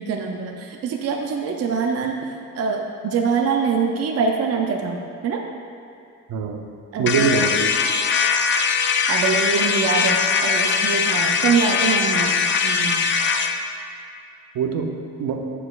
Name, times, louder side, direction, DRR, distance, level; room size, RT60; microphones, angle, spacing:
voice 1, 0.0-2.2 2.5-5.4 6.9-7.5 9.1-13.0, right 5 dB, 45° right, 2 dB, 0.5 m, -24 dB
voice 2, 6.3-6.6 7.0-7.7 14.5-15.4, right 5 dB, 80° right, 4 dB, 0.7 m, -23 dB
sound 1, 7.1-13.6, left 6 dB, 35° left, 0.4 m, -21 dB
8.7 x 6.9 x 2.4 m, 2.5 s
cardioid pair, 155°, 35 cm